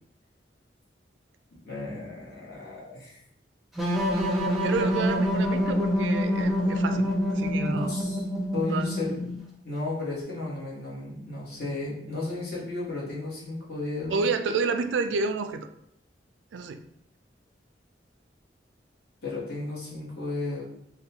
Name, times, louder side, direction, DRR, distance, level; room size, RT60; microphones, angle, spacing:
voice 1, 1.6-3.2 7.6-8.2 8.5-9.3 9.6-14.2 19.2-20.6, left 2 dB, 60° left, -6 dB, 1.2 m, -34 dB
sound 1, 3.8-9.4, equal, ahead, 0.5 m, -26 dB
voice 2, 4.5-7.1 7.3-7.9 8.7-8.9 14.1-15.7 16.5-16.8, right 4 dB, 90° right, 8 dB, 0.3 m, -29 dB
3.7 x 2.2 x 2.8 m, 0.77 s
head